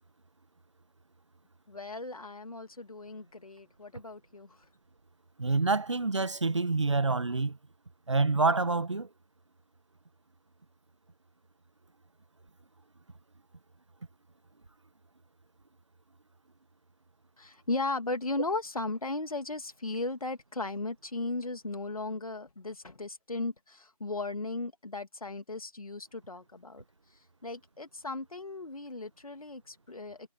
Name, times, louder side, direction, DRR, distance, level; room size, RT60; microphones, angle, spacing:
voice 1, 1.7-4.6 17.4-26.8 27.4-30.3, left 2 dB, 70° left, 2.6 m, -36 dB
voice 2, 5.4-7.6 8.1-9.1, right 3 dB, 50° right, 1.3 m, -27 dB
figure-of-eight pair, 175°, 19 cm